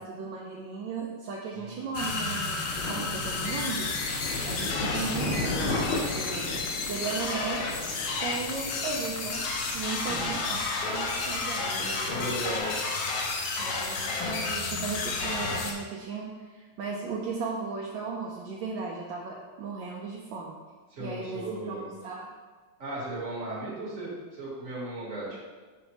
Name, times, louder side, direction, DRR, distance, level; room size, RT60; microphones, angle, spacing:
voice 1, 0.0-3.9 4.5-6.6 6.9-7.7 8.2-9.5 9.7-12.2 13.6-20.5 21.0-22.3, right 4 dB, 75° right, -2 dB, 1.3 m, -36 dB
voice 2, 1.5-2.0 10.1-10.3 12.1-12.8 20.9-21.9 22.8-25.4, right 2 dB, 40° right, -5 dB, 1.7 m, -36 dB
sound 1, 1.9-15.7, left 3 dB, 65° left, 1.0 m, -31 dB
Thunder, 2.6-12.6, left 2 dB, 80° left, 1.8 m, -37 dB
6.3 x 5.0 x 3.0 m, 1.4 s
omnidirectional pair, 2.3 m